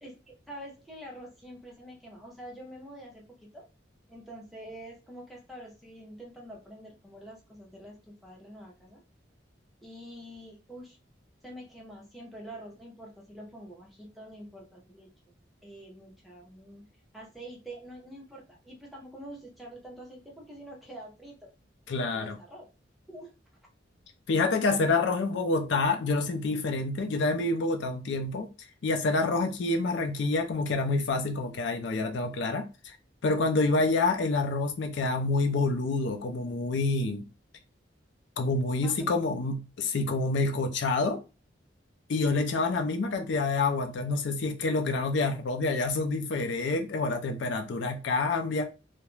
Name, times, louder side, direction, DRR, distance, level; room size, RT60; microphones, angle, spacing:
voice 1, 0.0-3.7 4.1-9.0 9.8-11.0 11.4-15.1 15.6-16.8 17.1-21.5 21.9-22.7 23.1-23.4 38.8-39.1, right 1 dB, ahead, 0.6 m, -46 dB
voice 2, 21.9-22.4 24.3-28.5 28.8-33.0 33.2-37.3 38.4-41.2 42.1-48.7, left 3 dB, 70° left, 0.4 m, -27 dB
2.3 x 2.1 x 3.0 m
head